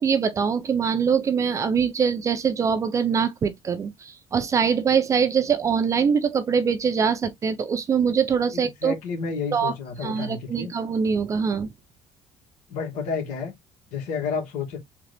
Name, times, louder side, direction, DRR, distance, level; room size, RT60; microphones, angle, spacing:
voice 1, 0.0-9.0 9.5-9.7 10.0-11.7, right 6 dB, 25° right, 0.5 m, -23 dB
voice 2, 8.5-10.7 12.7-13.5 13.9-14.8, left 5 dB, 90° left, 2.4 m, -30 dB
3.9 x 3.6 x 3.4 m
cardioid pair, 170°, 12 cm